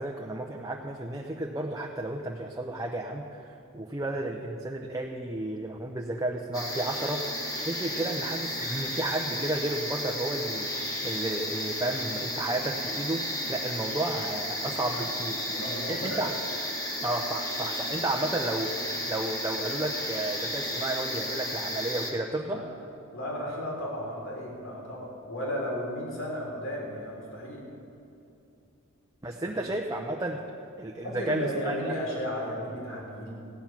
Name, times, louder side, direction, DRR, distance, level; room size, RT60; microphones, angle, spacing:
voice 1, 0.0-16.3 17.0-22.6 29.2-30.4 30.8-31.9, right 1 dB, 15° right, 1 dB, 0.7 m, -32 dB
sound 1, 6.5-22.1, left 1 dB, 15° left, 1.5 m, -33 dB
voice 2, 15.5-16.2 22.4-22.7 23.1-27.6 29.3-29.7 31.0-33.3, equal, 65° left, -3 dB, 3.3 m, -34 dB
16.0 x 9.4 x 5.9 m, 2.7 s
head